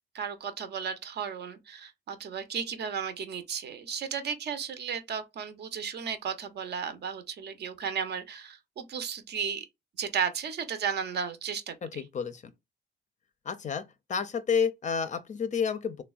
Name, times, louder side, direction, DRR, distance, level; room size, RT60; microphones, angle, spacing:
voice 1, 0.1-9.6 10.0-12.0, right 7 dB, 55° right, 0.6 m, -34 dB
voice 2, 11.8-12.4 13.4-16.0, left 6 dB, 40° left, 0.4 m, -30 dB
3.3 x 2.1 x 2.3 m
cardioid pair, 90°, 20 cm